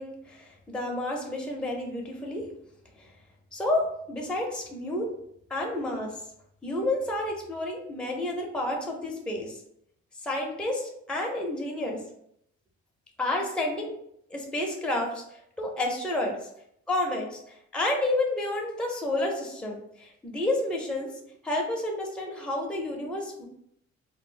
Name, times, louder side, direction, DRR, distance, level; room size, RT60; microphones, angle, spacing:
voice 1, 0.0-2.4 3.0-3.1 3.5-5.1 5.5-6.2 6.6-9.6 10.2-12.0 13.2-13.9 14.3-16.3 16.9-21.1 21.4-23.5, left 1 dB, 5° left, 0 dB, 0.6 m, -30 dB
2.1 x 2.0 x 3.7 m, 0.72 s
cardioid pair, 90°, 30 cm